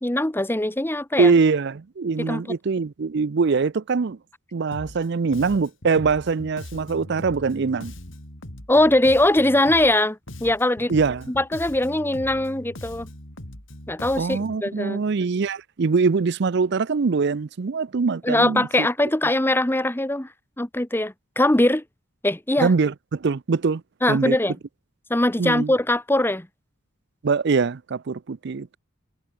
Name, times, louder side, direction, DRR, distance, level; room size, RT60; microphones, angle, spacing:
voice 1, 0.0-1.3 2.2-2.4 8.7-10.9 11.3-13.1 13.9-15.0 18.2-20.3 20.6-21.8 22.2-22.7 24.0-24.5 25.1-26.5, left 1 dB, 10° left, 0.9 m, -21 dB
voice 2, 1.2-4.2 4.5-7.9 10.9-11.3 14.2-18.9 22.6-23.8 24.1-24.4 25.4-25.7 27.2-28.8, right 4 dB, 55° right, 0.5 m, -23 dB
Bass guitar, 4.7-5.1 5.3-10.0 10.3-14.6, left 1 dB, 65° left, 4.4 m, -40 dB
head